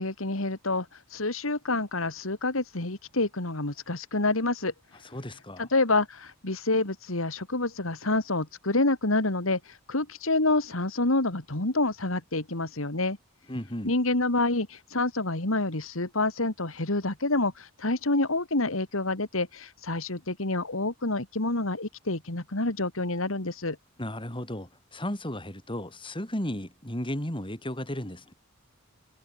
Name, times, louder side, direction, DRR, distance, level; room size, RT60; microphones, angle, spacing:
voice 1, 0.0-4.7 5.6-13.2 13.8-23.8, left 2 dB, 75° left, 2.8 m, -28 dB
voice 2, 5.1-5.7 13.5-13.9 24.0-28.3, left 1 dB, 25° left, 7.4 m, -34 dB
head